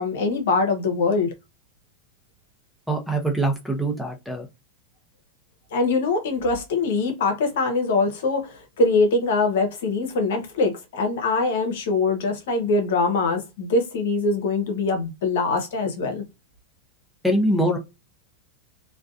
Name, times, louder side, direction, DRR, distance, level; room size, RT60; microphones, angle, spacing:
voice 1, 0.0-1.3 5.7-16.2, left 3 dB, 75° left, 0.8 m, -23 dB
voice 2, 2.9-4.5 17.2-17.8, right 1 dB, ahead, 0.6 m, -23 dB
2.4 x 2.2 x 2.4 m
supercardioid pair, 125°, 0 cm